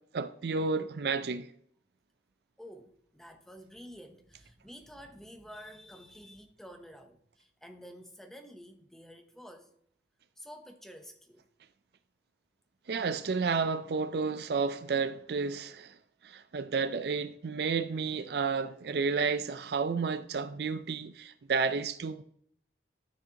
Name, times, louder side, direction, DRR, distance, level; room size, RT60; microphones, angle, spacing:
voice 1, 0.1-1.5 12.9-15.9 16.2-22.2, right 5 dB, 55° right, 0.4 m, -31 dB
voice 2, 2.6-9.7 10.4-11.4, equal, ahead, 0.8 m, -50 dB
13.0 x 6.4 x 2.9 m
head